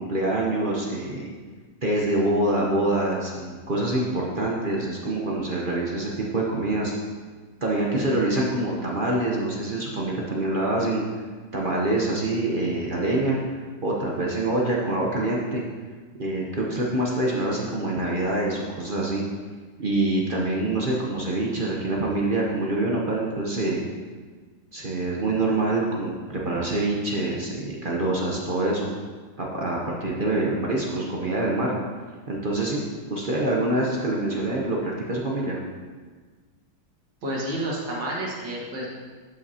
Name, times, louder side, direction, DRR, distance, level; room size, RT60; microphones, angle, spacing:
voice 1, 0.0-1.3 1.8-6.9 7.6-11.0 11.5-13.4 13.8-15.6 16.2-19.2 19.8-23.8 24.7-28.9 29.4-31.8 32.3-35.6, right 2 dB, 45° right, -3 dB, 0.7 m, -25 dB
voice 2, 37.2-38.9, right 1 dB, 75° right, -4 dB, 2.3 m, -30 dB
11.5 x 5.7 x 2.8 m, 1.4 s
omnidirectional pair, 2.0 m